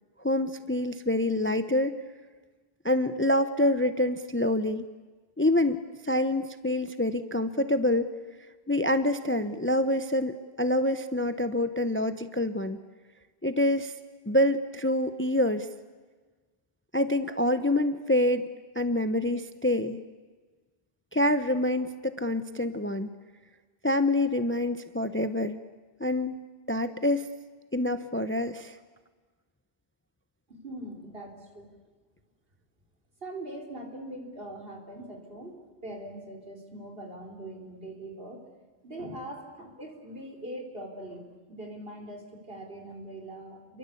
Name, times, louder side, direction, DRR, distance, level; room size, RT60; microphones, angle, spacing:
voice 1, 0.2-2.0 2.8-4.9 5.4-8.1 8.7-12.8 13.4-13.9 14.3-15.7 16.9-18.5 18.7-20.0 21.1-23.1 23.8-25.6 26.0-26.4 26.7-27.3 27.7-28.8, left 1 dB, 10° left, 11 dB, 0.8 m, -26 dB
voice 2, 30.5-31.7 33.2-38.5 38.8-43.8, right 1 dB, 60° right, 3 dB, 4.6 m, -42 dB
29.5 x 23.0 x 8.5 m, 1.4 s
omnidirectional pair, 1.1 m